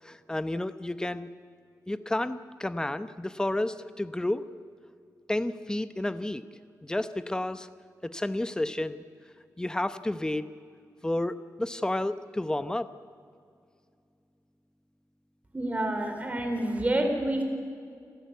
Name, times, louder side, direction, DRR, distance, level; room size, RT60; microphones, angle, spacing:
voice 1, 0.1-1.3 1.9-4.4 5.3-6.4 6.8-7.7 8.0-9.0 9.6-10.4 11.0-12.9, left 1 dB, 10° left, 12 dB, 0.8 m, -31 dB
voice 2, 15.5-17.4, right 1 dB, 20° right, 3 dB, 3.8 m, -28 dB
29.0 x 13.0 x 9.5 m, 2.3 s
wide cardioid pair, 120°, 7 cm